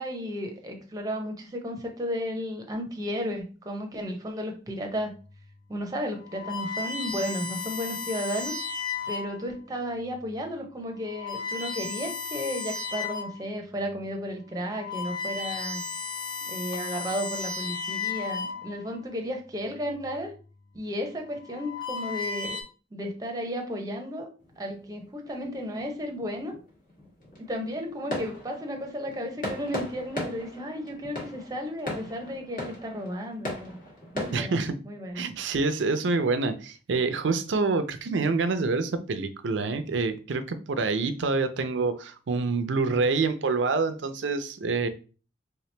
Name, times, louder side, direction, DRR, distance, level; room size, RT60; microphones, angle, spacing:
voice 1, 0.0-5.2 5.7-8.5 9.1-15.8 16.5-20.3 20.7-22.6 22.9-24.3 24.6-26.5 27.4-33.8 34.1-34.6 34.8-35.2, equal, 20° right, 3 dB, 0.6 m, -33 dB
sound 1, 5.3-5.5 6.1-9.5 10.2-10.4 11.0-13.4 13.9-14.0 14.5-19.0 20.0-20.4 21.3-22.6, left 4 dB, 25° left, 0.5 m, -34 dB
sound 2, 24.4-34.4, left 1 dB, 50° left, 1.3 m, -38 dB
voice 2, 34.3-34.8 35.1-44.9, right 4 dB, 90° right, 10 dB, 0.5 m, -27 dB
3.2 x 2.9 x 3.2 m, 0.37 s
head